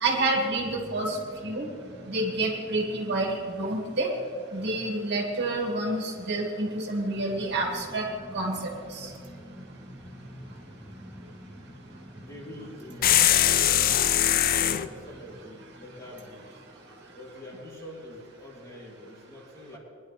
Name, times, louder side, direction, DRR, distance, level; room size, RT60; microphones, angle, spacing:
voice 1, 0.0-1.2 1.4-1.7 2.1-4.1 4.5-8.0 8.3-8.6 9.0-9.1, right 2 dB, 55° right, 0 dB, 2.2 m, -28 dB
sound 1, 0.6-17.8, equal, 5° right, 1.4 m, -48 dB
voice 2, 12.1-16.5 17.1-19.8, left 1 dB, 15° left, -4 dB, 2.8 m, -44 dB
sound 2, 13.0-14.9, left 11 dB, 45° left, 0.4 m, -21 dB
22.0 x 11.0 x 3.4 m, 2.3 s
head